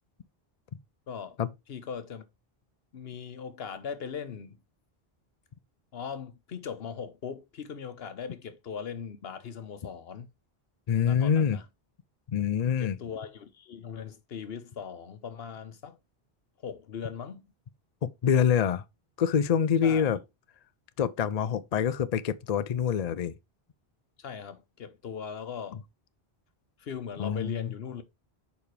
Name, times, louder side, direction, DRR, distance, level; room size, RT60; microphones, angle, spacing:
voice 1, 1.1-2.2 2.9-4.6 5.9-10.3 11.0-11.7 12.8-16.0 16.6-17.4 19.8-20.0 24.2-25.8 26.8-28.0, left 7 dB, 75° left, 1.1 m, -39 dB
voice 2, 10.9-11.6 12.3-13.0 18.0-18.8 19.2-20.2 21.0-23.3 27.2-27.7, left 8 dB, 50° left, 0.5 m, -26 dB
7.0 x 5.1 x 3.2 m
omnidirectional pair, 1.0 m